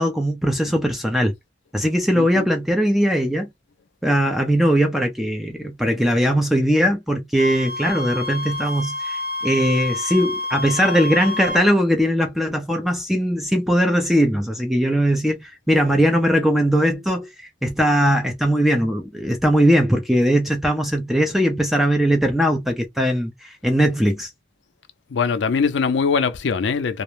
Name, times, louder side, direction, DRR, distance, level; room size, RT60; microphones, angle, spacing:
voice 1, 0.0-1.3 1.7-3.5 4.0-24.3, equal, ahead, 0.4 m, -20 dB
voice 2, 2.1-2.5 25.1-27.0, left 5 dB, 85° left, 0.4 m, -22 dB
Wind instrument woodwind instrument, 7.4-11.7, left 2 dB, 55° right, 0.9 m, -28 dB
2.4 x 2.0 x 3.0 m
head